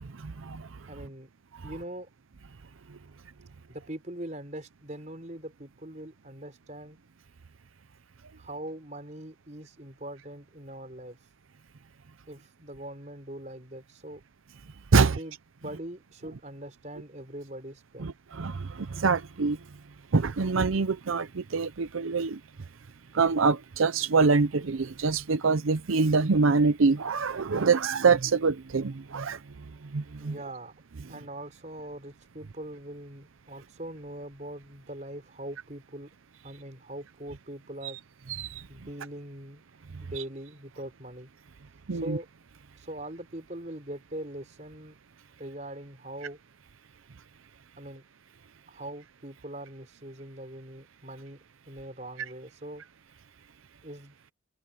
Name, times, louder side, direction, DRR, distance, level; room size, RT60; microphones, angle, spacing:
voice 1, 0.0-0.9 1.6-1.7 2.9-3.0 14.9-15.2 18.0-19.6 20.1-22.4 23.1-30.4 37.8-37.9 38.3-38.7 39.9-40.0 41.9-42.2, right 4 dB, 90° right, 0.6 m, -25 dB
voice 2, 0.9-1.3 1.6-2.1 3.7-7.0 8.4-11.2 12.3-14.2 14.9-15.3 15.6-18.1 30.2-30.7 31.1-36.1 36.4-38.0 38.7-39.6 40.0-41.3 41.9-42.3 42.8-45.0 45.4-46.4 47.8-48.0 48.7-52.8 53.8-54.2, right 1 dB, 35° right, 4.6 m, -42 dB
head